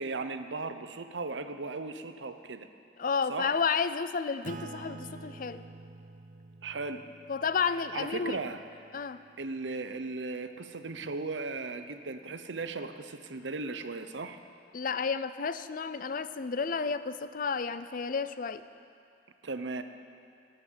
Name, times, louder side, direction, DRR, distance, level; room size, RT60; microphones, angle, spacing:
voice 1, 0.0-2.7 3.3-3.6 6.6-7.0 7.9-8.6 9.4-14.4 19.4-19.8, right 3 dB, 80° right, 9 dB, 0.8 m, -37 dB
voice 2, 3.0-5.6 7.3-8.4 8.9-9.2 14.7-18.6, left 5 dB, 50° left, 13 dB, 0.5 m, -31 dB
Acoustic guitar / Strum, 4.4-9.4, right 3 dB, 45° right, 0.4 m, -48 dB
18.0 x 8.8 x 7.5 m, 2.4 s
head